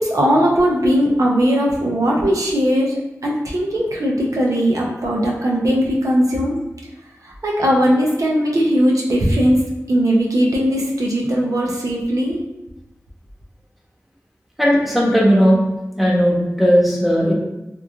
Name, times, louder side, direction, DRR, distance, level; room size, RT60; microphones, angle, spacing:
voice 1, 0.0-2.9 3.2-6.6 7.2-9.6 9.9-12.4, equal, 75° right, -2 dB, 0.5 m, -18 dB
voice 2, 14.6-15.6 16.0-17.3, equal, ahead, -5 dB, 0.9 m, -15 dB
2.9 x 2.4 x 2.4 m, 0.94 s
wide cardioid pair, 40°, 6 cm